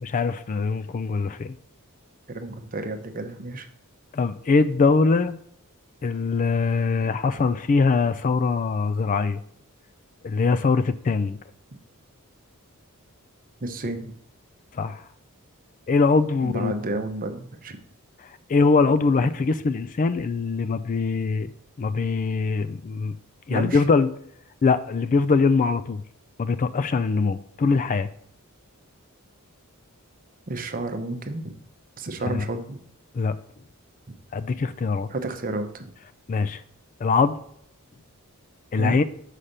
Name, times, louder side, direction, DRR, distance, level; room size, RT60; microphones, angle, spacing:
voice 1, 0.1-1.6 4.1-5.4 6.0-9.4 10.2-11.4 14.7-15.0 15.9-16.7 18.2-21.5 21.8-23.2 23.5-24.1 24.6-26.0 26.4-28.1 32.2-32.4 33.1-33.4 34.3-35.1 36.3-36.6 37.0-37.4 38.7-39.0, left 4 dB, 35° left, 13 dB, 0.3 m, -22 dB
voice 2, 2.3-3.7 13.6-14.1 16.4-17.8 23.5-23.8 30.5-31.5 32.0-32.8 35.1-35.9 38.8-39.0, right 2 dB, 40° right, 7 dB, 0.8 m, -31 dB
5.7 x 4.9 x 6.6 m, 0.67 s
head